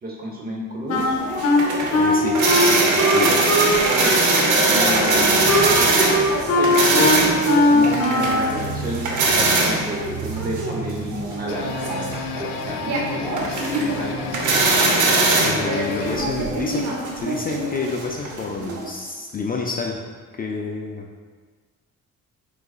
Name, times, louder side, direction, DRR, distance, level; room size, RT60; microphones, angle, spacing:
voice 1, 0.0-1.2 3.8-4.1 4.7-5.5 5.8-6.0 6.6-14.1, right 1 dB, 30° right, -2 dB, 1.0 m, -30 dB
Wind instrument woodwind instrument, 0.9-3.8 4.0-8.5, left 2 dB, 50° left, 0.8 m, -20 dB
sound 1, 1.0-18.8, right 3 dB, 75° right, 0.8 m, -22 dB
voice 2, 1.9-2.4 2.6-3.4 15.4-20.0 20.4-21.1, left 4 dB, 30° left, 0 dB, 0.4 m, -29 dB
sound 2, 11.2-16.3, left 5 dB, 90° left, 0.5 m, -32 dB
4.6 x 3.9 x 2.4 m, 1.5 s
cardioid pair, 90°, 30 cm